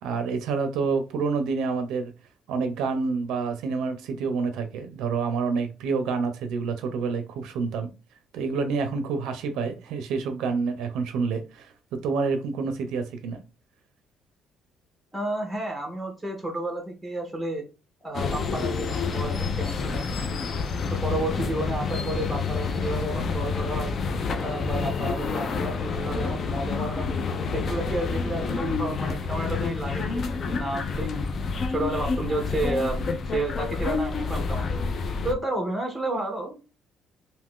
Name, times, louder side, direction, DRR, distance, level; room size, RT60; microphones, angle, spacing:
voice 1, 0.0-2.1 2.5-7.9 8.3-13.4, right 4 dB, 85° right, 0.5 m, -28 dB
voice 2, 15.1-17.7 18.0-20.1 20.9-23.9 24.4-31.1 31.7-34.8 35.2-36.6, right 2 dB, 5° right, 0.6 m, -31 dB
sound 1, 18.1-35.3, left 4 dB, 40° left, 0.4 m, -28 dB
2.6 x 2.4 x 3.5 m
cardioid pair, 150°, 0 cm